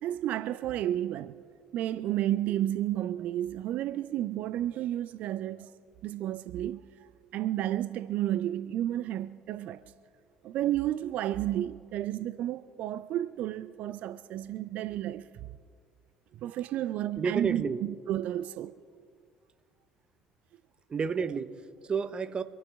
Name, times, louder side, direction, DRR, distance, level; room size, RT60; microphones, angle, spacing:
voice 1, 0.0-1.3 1.7-5.7 6.0-9.8 10.4-15.5 16.4-18.8, right 12 dB, 50° right, 0.4 m, -32 dB
voice 2, 17.2-17.9 20.9-22.4, right 5 dB, 30° right, 0.8 m, -31 dB
25.5 x 11.5 x 3.4 m
figure-of-eight pair, 55°, 3 cm